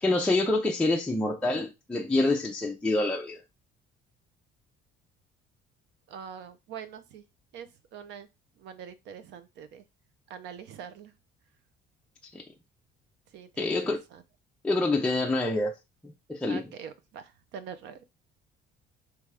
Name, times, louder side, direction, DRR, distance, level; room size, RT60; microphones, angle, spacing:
voice 1, 0.0-3.4 12.3-12.4 13.6-14.0 14.6-15.8 16.3-16.6, left 2 dB, 5° left, 0.5 m, -26 dB
voice 2, 6.1-7.2 7.5-8.3 8.6-9.8 10.3-11.1 13.3-14.2 16.5-18.0, right 7 dB, 70° right, 0.8 m, -44 dB
3.4 x 3.3 x 4.8 m
cardioid pair, 155°, 18 cm